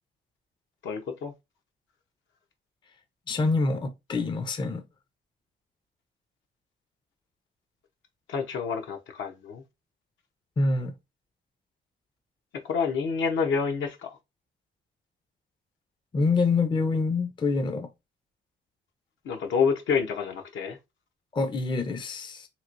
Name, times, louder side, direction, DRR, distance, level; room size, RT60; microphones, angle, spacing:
voice 1, 0.8-1.3 8.3-9.6 12.7-14.1 19.2-20.8, left 6 dB, 70° left, 0.8 m, -28 dB
voice 2, 3.3-4.8 10.6-10.9 16.1-17.9 21.3-22.5, left 3 dB, 25° left, 0.5 m, -26 dB
3.0 x 2.9 x 2.5 m
cardioid pair, 90°, 20 cm